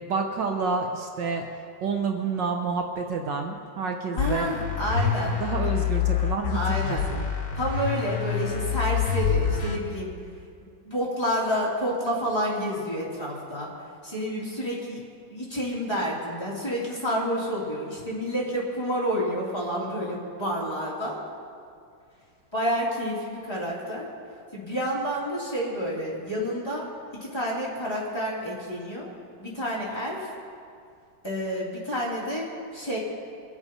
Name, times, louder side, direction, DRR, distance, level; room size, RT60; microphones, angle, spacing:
voice 1, 0.0-1.5 1.8-4.5 5.4-6.6 6.9-7.2, right 4 dB, 65° right, 3 dB, 1.5 m, -29 dB
voice 2, 4.1-5.4 6.5-7.1 7.5-10.1 10.8-13.7 14.0-15.0 15.3-21.2 22.5-24.1 24.5-26.9 27.2-29.1 29.4-30.3 31.2-33.0, equal, 10° left, -6 dB, 3.0 m, -29 dB
sound 1, 4.2-9.8, left 8 dB, 40° left, 1.6 m, -26 dB
23.0 x 8.0 x 5.5 m, 2.4 s
omnidirectional pair, 2.2 m